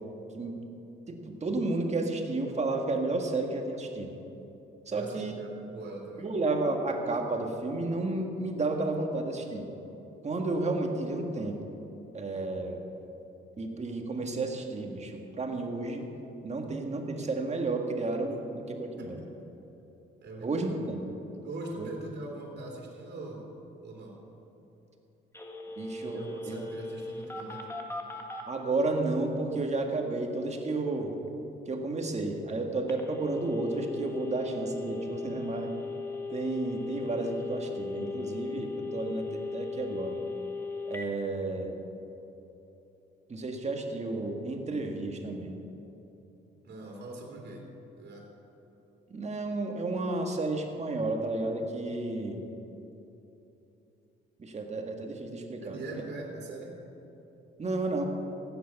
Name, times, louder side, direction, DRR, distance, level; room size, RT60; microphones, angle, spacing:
voice 1, 1.1-4.1 4.9-5.3 6.2-9.7 10.2-11.6 12.1-12.8 13.6-16.1 16.4-19.2 20.4-21.0 21.8-21.9 25.8-26.6 28.5-31.1 31.7-35.7 36.3-40.2 40.9-41.8 43.3-45.6 49.1-52.4 54.4-55.8 57.6-58.0, right 2 dB, 35° right, 3 dB, 1.8 m, -32 dB
voice 2, 4.9-6.3 19.0-19.5 20.2-20.8 21.4-23.4 23.8-24.2 26.1-27.7 46.6-47.6 48.0-48.3 55.6-56.7, right 2 dB, 60° right, -1 dB, 3.0 m, -42 dB
Telephone, 25.3-28.4 32.9-41.1, left 3 dB, 10° left, 1.6 m, -38 dB
15.0 x 9.5 x 5.9 m, 3.0 s
cardioid pair, 90°, 20 cm